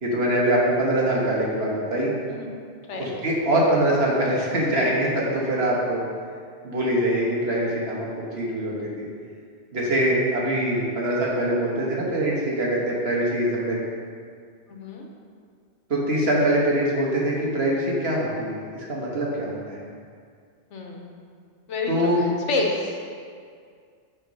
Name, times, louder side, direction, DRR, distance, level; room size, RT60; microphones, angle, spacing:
voice 1, 0.0-2.1 3.0-6.0 6.6-8.1 8.3-9.1 9.7-13.8 15.9-19.8 21.9-22.2, right 1 dB, 60° right, -4 dB, 1.5 m, -23 dB
voice 2, 14.7-15.1 20.7-21.1 21.7-23.1, left 2 dB, 90° left, 0 dB, 1.2 m, -29 dB
7.6 x 3.7 x 5.3 m, 2.1 s
omnidirectional pair, 1.2 m